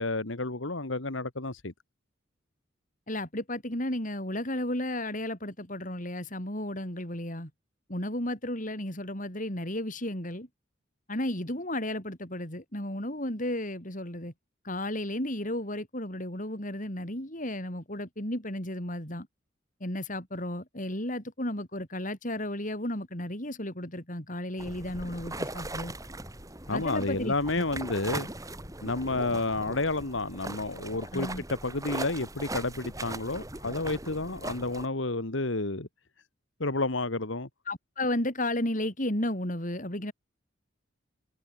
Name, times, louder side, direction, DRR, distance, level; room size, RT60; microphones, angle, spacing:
voice 1, 0.0-1.7 26.7-28.3 28.8-31.3 31.6-35.9 36.6-37.5, left 2 dB, 75° left, 2.1 m, -30 dB
voice 2, 3.1-7.5 7.9-10.5 11.1-14.3 14.6-19.3 19.8-25.9 26.7-27.3 31.1-31.4 37.7-40.1, left 1 dB, 40° left, 7.1 m, -33 dB
sound 1, 24.6-34.9, right 2 dB, 15° right, 4.4 m, -39 dB
head